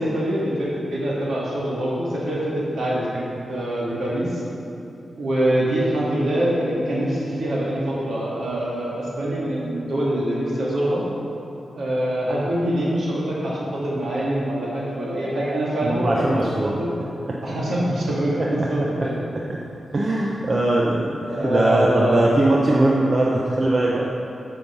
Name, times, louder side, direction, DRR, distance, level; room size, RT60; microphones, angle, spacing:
voice 1, 0.0-4.4 5.2-11.0 11.7-17.0 17.4-19.2 21.3-22.2, right 1 dB, 65° right, -6 dB, 2.3 m, -24 dB
voice 2, 15.8-16.7 17.3-17.4 18.4-18.7 19.0-19.1 19.3-19.6 19.9-24.2, right 2 dB, 35° right, -3 dB, 0.7 m, -21 dB
9.3 x 5.5 x 6.7 m, 2.7 s
wide cardioid pair, 165°, 0 cm